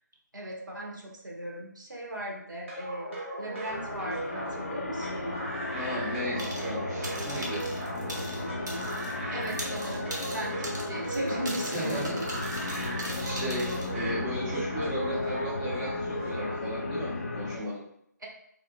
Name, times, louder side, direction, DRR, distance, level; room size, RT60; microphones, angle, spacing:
voice 1, 0.3-5.5 9.3-12.3 13.2-13.4 18.2-18.3, right 1 dB, 85° right, -2 dB, 1.3 m, -37 dB
sound 1, 2.7-16.5, right 1 dB, 40° right, 0.8 m, -38 dB
sound 2, 3.7-17.6, left 2 dB, 40° left, 0.5 m, -35 dB
voice 2, 5.7-7.7 8.0-8.2 11.7-12.2 12.7-17.8, equal, 10° right, -8 dB, 0.4 m, -35 dB
sound 3, 6.4-6.8 7.0-9.2 9.4-13.9, right 1 dB, 70° right, 1.0 m, -40 dB
3.5 x 2.7 x 2.4 m, 0.71 s
figure-of-eight pair, 165°, 10 cm